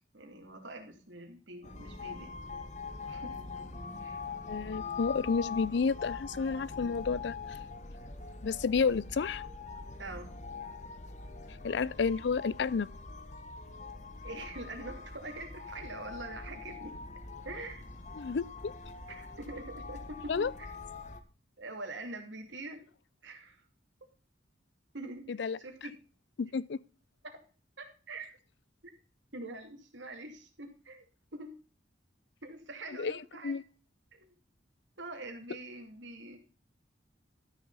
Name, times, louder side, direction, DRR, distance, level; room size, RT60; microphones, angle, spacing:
voice 1, 0.1-2.3 3.1-3.4 4.0-4.2 10.0-10.3 14.2-17.0 17.4-17.9 19.1-20.7 21.6-22.8 23.2-23.6 24.9-25.9 27.2-27.4 27.8-28.3 29.3-31.0 31.3-31.6 32.4-33.6 34.1-34.3 35.0-36.4, right 2 dB, 85° right, 2.6 m, -44 dB
sound 1, 1.6-21.2, left 4 dB, 40° left, 1.2 m, -43 dB
voice 2, 4.5-7.6 8.4-9.4 11.6-12.9 18.2-18.7 20.3-20.5 25.3-25.6 26.4-26.8 33.0-33.2 33.4-33.6, left 5 dB, 65° left, 0.4 m, -31 dB
13.0 x 6.5 x 4.0 m
head